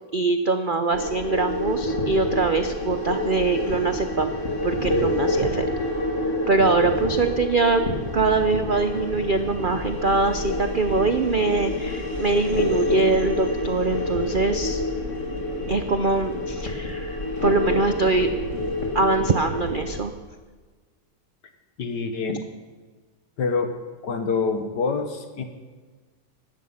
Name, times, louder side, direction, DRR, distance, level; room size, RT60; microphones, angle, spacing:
voice 1, 0.1-4.4 4.6-5.6 6.5-7.8 8.1-14.8 15.7-18.3 18.9-20.1, right 3 dB, 70° right, 8 dB, 0.4 m, -23 dB
sound 1, 0.9-20.0, left 2 dB, 45° left, 2.2 m, -27 dB
voice 2, 21.8-22.5 23.4-23.7 24.0-25.4, left 4 dB, 70° left, 7 dB, 2.0 m, -26 dB
16.5 x 12.5 x 5.6 m, 1.4 s
omnidirectional pair, 1.9 m